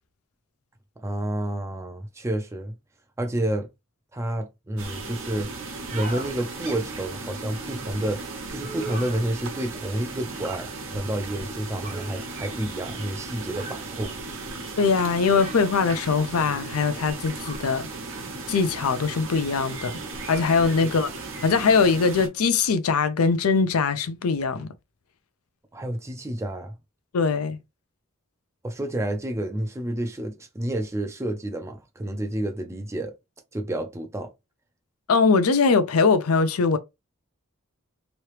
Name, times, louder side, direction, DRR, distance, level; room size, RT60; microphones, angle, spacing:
voice 1, 1.0-2.8 3.2-3.7 4.1-5.5 5.9-8.2 8.5-14.1 20.8-20.9 25.7-26.8 28.6-33.1 33.5-34.3, right 1 dB, 15° right, 0.4 m, -30 dB
sound 1, 4.8-22.3, right 3 dB, 65° right, 0.9 m, -36 dB
sound 2, 5.8-6.3 8.6-9.2 11.8-12.1 13.5-13.9 15.2-15.7 17.3-17.7, right 4 dB, 40° right, 0.9 m, -38 dB
voice 2, 14.8-17.8 18.5-19.9 20.3-21.1 21.4-24.7 27.1-27.6 35.1-36.8, left 4 dB, 85° left, 0.5 m, -21 dB
3.1 x 2.8 x 3.1 m
head